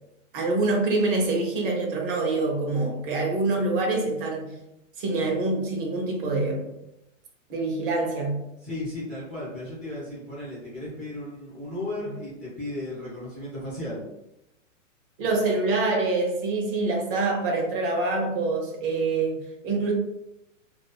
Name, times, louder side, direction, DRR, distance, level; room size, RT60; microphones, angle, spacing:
voice 1, 0.3-4.6 5.0-6.7 7.5-8.4 15.2-19.9, right 3 dB, 45° right, 0 dB, 0.7 m, -25 dB
voice 2, 8.6-14.0, left 1 dB, 5° right, -9 dB, 0.4 m, -35 dB
2.5 x 2.3 x 2.2 m, 0.88 s
hypercardioid pair, 145°, 39 cm